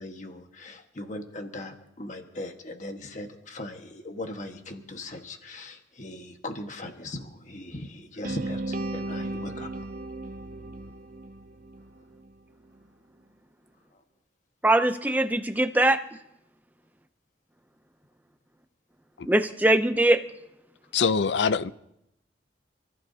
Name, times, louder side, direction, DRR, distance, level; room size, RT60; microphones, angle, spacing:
voice 1, 0.0-9.7 15.1-15.2, left 1 dB, 40° left, 1.5 m, -39 dB
sound 1, 8.2-12.3, right 2 dB, 50° right, 0.8 m, -35 dB
voice 2, 14.6-16.0 19.2-20.2, right 1 dB, 10° right, 0.6 m, -21 dB
voice 3, 20.9-21.7, left 5 dB, 75° left, 0.5 m, -23 dB
27.5 x 14.5 x 2.8 m
head